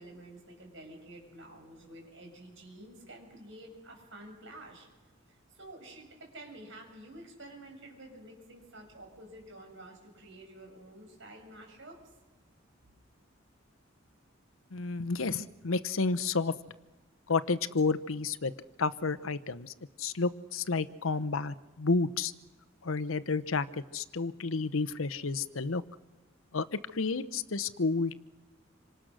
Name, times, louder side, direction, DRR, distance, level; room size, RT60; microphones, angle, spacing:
voice 1, 0.0-4.9 5.3-12.0, right 1 dB, 65° right, 2 dB, 6.7 m, -50 dB
voice 2, 14.7-16.5 17.3-18.5 18.8-19.7 20.0-22.3 22.8-23.7 23.9-25.8 26.5-28.1, left 4 dB, 80° left, 13 dB, 0.9 m, -30 dB
27.0 x 26.0 x 6.4 m, 1.2 s
head